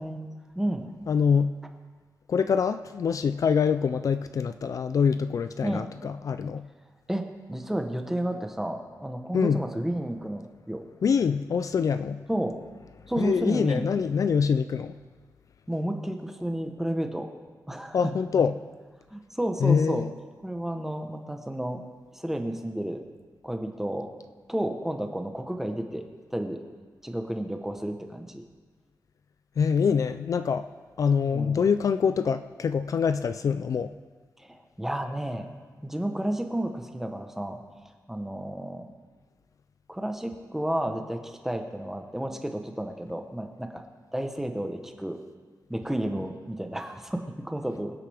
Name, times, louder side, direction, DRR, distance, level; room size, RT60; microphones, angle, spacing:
voice 1, 0.0-0.9 5.6-5.9 7.1-10.8 12.3-12.6 13.1-13.9 15.7-17.3 17.7-18.1 19.1-20.1 20.4-21.8 22.1-23.0 23.4-24.1 24.5-26.0 26.3-26.6 27.0-28.4 31.3-31.7 34.4-35.5 35.8-37.6 38.1-38.9 39.9-43.8 44.1-45.2 45.7-48.0, right 1 dB, 5° right, 5 dB, 1.0 m, -31 dB
voice 2, 1.1-1.6 2.3-6.7 9.3-9.6 11.0-12.2 13.2-14.9 17.9-18.5 19.6-20.1 29.6-30.7 31.0-33.9, left 6 dB, 55° left, 11 dB, 0.4 m, -25 dB
24.5 x 8.3 x 3.5 m, 1.5 s
wide cardioid pair, 165°, 7 cm